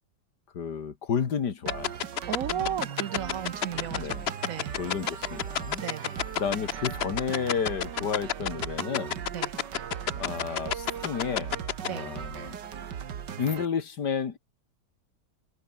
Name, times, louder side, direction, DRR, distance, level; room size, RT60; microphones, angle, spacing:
voice 1, 0.5-1.9 3.9-4.3 4.8-5.8 6.4-9.2 10.2-11.5 11.9-12.6 13.4-14.4, left 7 dB, 75° left, 2.4 m, -31 dB
sound 1, 1.7-11.9, left 8 dB, 50° left, 0.8 m, -27 dB
sound 2, 1.7-13.7, right 8 dB, 85° right, 2.1 m, -38 dB
voice 2, 2.3-4.8 5.8-6.2 9.3-9.5 11.9-12.1, right 9 dB, 60° right, 1.1 m, -35 dB
sound 3, 3.3-11.9, equal, 5° right, 3.6 m, -54 dB
omnidirectional pair, 1.8 m